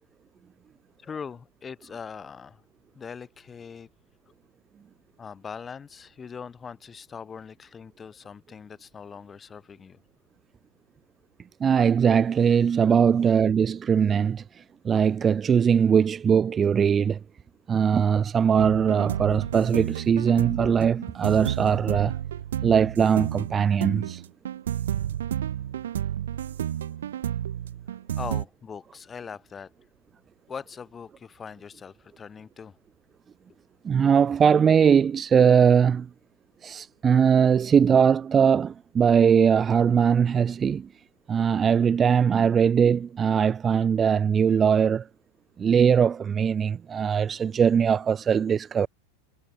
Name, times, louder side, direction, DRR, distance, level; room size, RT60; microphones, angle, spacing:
voice 1, 1.0-2.6 3.0-3.9 5.2-10.0 28.1-29.7 30.5-32.8, left 6 dB, 20° left, 5.5 m, -41 dB
voice 2, 11.6-14.4 14.8-17.2 17.7-22.2 22.6-24.2 33.8-36.1 36.6-40.9 41.3-45.1 45.6-48.9, right 7 dB, 25° right, 0.3 m, -21 dB
sound 1, 18.6-28.4, right 10 dB, 75° right, 0.9 m, -31 dB
hypercardioid pair, 95°, 0 cm